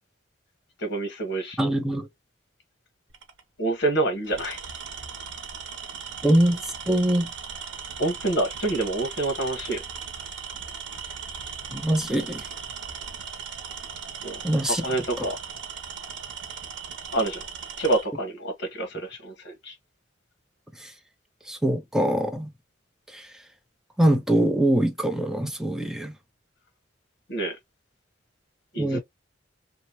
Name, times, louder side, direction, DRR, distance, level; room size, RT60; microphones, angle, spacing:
voice 1, 0.8-1.6 3.6-4.6 8.0-9.8 14.2-14.4 14.7-15.4 17.1-17.4 17.8-19.7 27.3-27.6 28.7-29.0, right 2 dB, 65° left, 1.1 m, -27 dB
voice 2, 1.6-2.1 6.2-7.3 11.7-12.4 14.4-14.8 15.2-15.3 20.8-20.9 21.5-22.5 23.1-23.3 24.0-26.1 28.8-29.0, right 1 dB, 5° right, 0.5 m, -23 dB
Tools, 3.1-3.4 4.2-18.1, right 6 dB, 90° right, 0.7 m, -38 dB
2.9 x 2.1 x 2.8 m
head